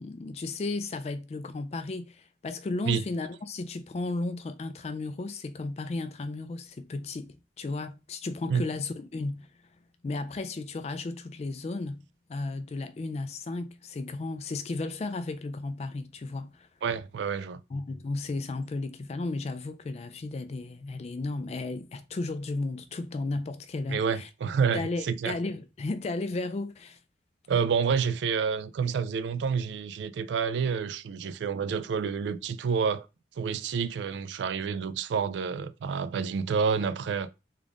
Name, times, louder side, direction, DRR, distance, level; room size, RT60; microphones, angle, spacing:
voice 1, 0.0-9.5 10.0-16.7 17.7-24.3 24.7-27.0, left 3 dB, 35° left, 0.3 m, -34 dB
voice 2, 16.8-17.6 23.9-25.3 27.5-33.1 33.4-37.3, right 6 dB, 70° right, 0.3 m, -28 dB
3.7 x 2.4 x 3.5 m
head